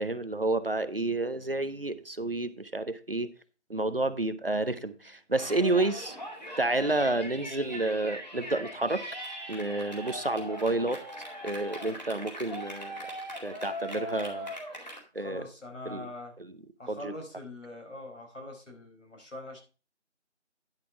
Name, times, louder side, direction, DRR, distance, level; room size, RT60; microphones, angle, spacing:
voice 1, 0.0-3.3 3.7-6.2 6.6-9.0 9.5-11.0 11.4-13.1 13.4-14.5 15.1-15.4 15.9-16.0 16.9-17.1, right 2 dB, 50° right, 12 dB, 0.8 m, -30 dB
Yell, 5.3-15.0, equal, 35° left, 2.3 m, -40 dB
voice 2, 15.2-16.3 16.8-19.6, left 1 dB, 85° left, 1 dB, 5.2 m, -43 dB
10.5 x 5.7 x 4.8 m, 0.34 s
figure-of-eight pair, 180°, 36 cm